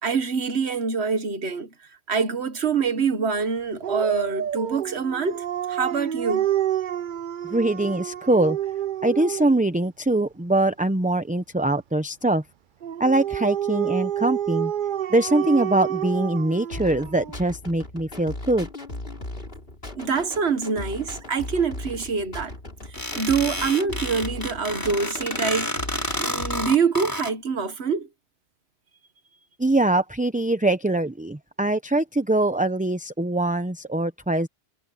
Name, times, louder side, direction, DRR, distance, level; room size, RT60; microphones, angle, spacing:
voice 1, 0.0-1.7 2.1-6.5 20.0-22.5 23.1-25.7 26.2-28.1, right 5 dB, 85° right, 1.7 m, -25 dB
Dog, 3.8-9.6 12.8-17.4, right 11 dB, 55° right, 0.7 m, -29 dB
voice 2, 7.4-8.6 9.0-12.4 13.0-14.7 15.1-18.7 29.6-34.5, right 2 dB, 10° right, 0.7 m, -23 dB
sound 1, 16.7-26.7, left 2 dB, 60° left, 3.9 m, -37 dB
sound 2, 22.9-27.3, equal, 20° left, 5.1 m, -30 dB
omnidirectional pair, 1.1 m